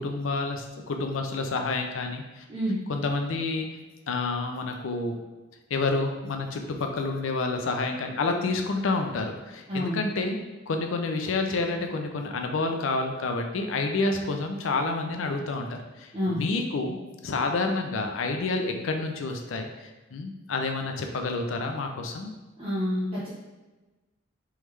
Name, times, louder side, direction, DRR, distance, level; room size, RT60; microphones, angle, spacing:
voice 1, 0.0-2.4 2.9-3.7 4.1-5.2 5.7-10.4 10.7-17.0 17.2-19.7 20.1-22.3, left 3 dB, 90° left, 4 dB, 0.5 m, -29 dB
voice 2, 9.7-10.0 16.1-16.4 22.6-23.3, equal, 30° right, -9 dB, 0.8 m, -28 dB
3.5 x 3.1 x 3.2 m, 1.2 s
head